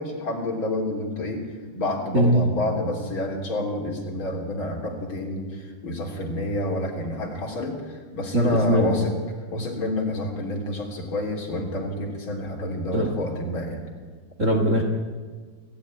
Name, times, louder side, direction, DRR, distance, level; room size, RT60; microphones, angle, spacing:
voice 1, 0.0-1.5 1.7-9.2 9.5-13.8, left 1 dB, 30° left, 1 dB, 3.7 m, -29 dB
voice 2, 2.1-2.5 8.3-9.0 12.9-13.1 14.4-14.8, right 1 dB, 45° right, 2 dB, 0.9 m, -20 dB
28.5 x 14.5 x 9.9 m, 1.5 s
omnidirectional pair, 4.8 m